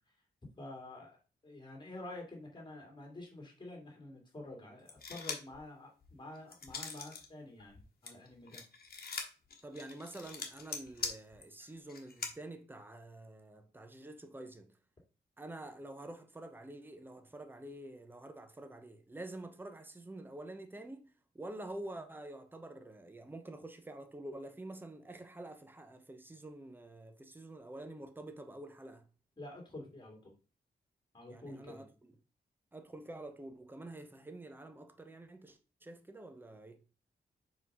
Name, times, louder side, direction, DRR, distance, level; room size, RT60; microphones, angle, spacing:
voice 1, 0.6-1.2 1.4-8.6 29.4-30.3 31.1-31.8, left 2 dB, 25° left, 2.5 m, -48 dB
sound 1, 4.9-5.6 6.0-7.3 7.6-12.3, left 5 dB, 55° left, 1.3 m, -42 dB
voice 2, 9.6-14.7 15.4-29.0 31.3-32.1 32.7-36.8, right 1 dB, 10° right, 0.7 m, -48 dB
5.1 x 3.9 x 5.4 m
wide cardioid pair, 165°, 18 cm